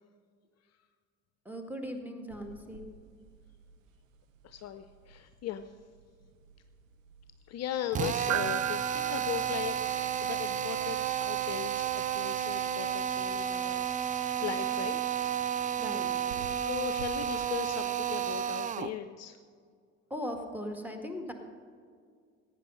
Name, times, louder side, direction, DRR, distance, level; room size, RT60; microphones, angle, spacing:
voice 1, 1.5-2.9 15.8-16.5 20.1-21.3, equal, 5° right, 3 dB, 1.9 m, -39 dB
sound 1, 2.3-17.5, right 11 dB, 80° right, 0.7 m, -44 dB
voice 2, 4.4-5.7 7.5-9.8 10.2-15.3 16.6-19.4, left 11 dB, 40° left, 10 dB, 0.6 m, -38 dB
Drill, 7.9-19.0, right 9 dB, 20° right, 0.4 m, -32 dB
16.0 x 9.0 x 5.5 m, 2.1 s
figure-of-eight pair, 55°, 39 cm